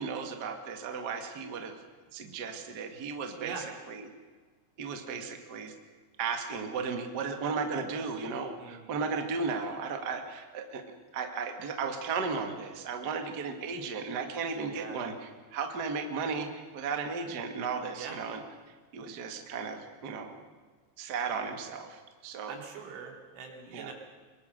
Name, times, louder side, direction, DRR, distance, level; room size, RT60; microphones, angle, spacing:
voice 1, 0.0-1.8 2.1-3.5 3.9-4.1 4.8-5.7 6.2-10.8 11.1-18.4 18.9-20.4 21.0-22.6 23.7-23.9, right 5 dB, 65° right, 4 dB, 1.0 m, -35 dB
voice 2, 8.6-9.0 14.7-15.0 18.0-18.2 22.5-23.9, right 6 dB, 85° right, 2 dB, 5.3 m, -43 dB
23.0 x 21.5 x 6.6 m, 1.5 s
omnidirectional pair, 5.4 m